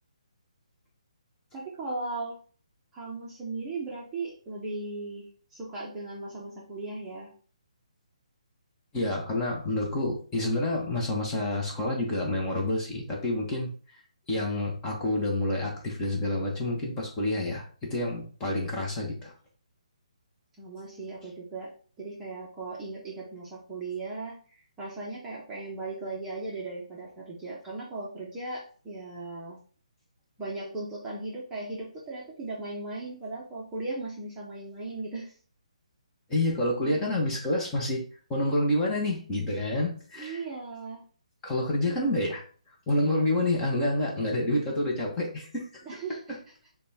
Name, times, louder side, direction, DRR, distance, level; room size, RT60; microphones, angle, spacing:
voice 1, 1.5-2.4 2.9-5.3 5.5-7.3 20.6-21.7 22.0-29.6 30.4-35.3 36.9-37.1 40.2-41.0 41.9-42.0 45.8-46.4, right 3 dB, 10° right, -5 dB, 0.8 m, -37 dB
voice 2, 8.9-13.7 14.3-19.3 36.3-38.0 38.3-40.4 41.4-42.4 42.9-45.8 46.3-46.4, left 1 dB, 15° left, -2 dB, 1.0 m, -28 dB
5.3 x 2.3 x 4.1 m, 0.42 s
hypercardioid pair, 160°, 4 cm